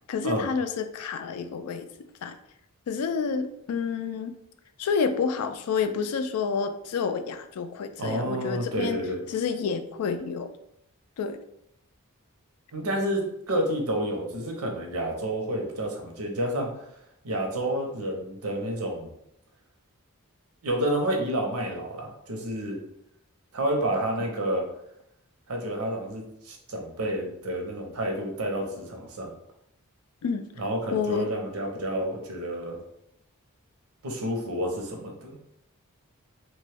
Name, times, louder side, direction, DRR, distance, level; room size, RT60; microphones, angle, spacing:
voice 1, 0.1-1.9 2.2-2.4 2.9-4.3 4.8-9.0 9.3-10.5 11.2-11.4 30.2-30.4 30.9-31.3, left 5 dB, 85° left, 9 dB, 0.3 m, -29 dB
voice 2, 8.0-9.2 12.7-16.7 17.2-19.1 20.6-22.8 23.5-24.7 25.5-29.3 30.6-32.8 34.0-35.3, right 1 dB, 80° right, 2 dB, 0.7 m, -29 dB
3.0 x 2.2 x 3.3 m, 0.78 s
head